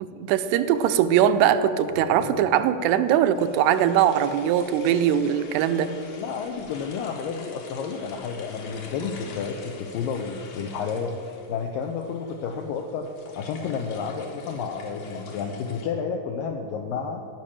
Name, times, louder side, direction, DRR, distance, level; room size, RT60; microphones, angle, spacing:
voice 1, 0.2-5.9, right 10 dB, 85° right, 9 dB, 2.6 m, -21 dB
sound 1, 0.8-1.5 1.9-2.6 3.4-15.8, left 3 dB, 60° left, 2.2 m, -44 dB
voice 2, 6.1-13.1 13.4-17.3, left 6 dB, 85° left, 4 dB, 2.0 m, -31 dB
15.0 x 6.0 x 8.6 m, 2.4 s
omnidirectional pair, 4.8 m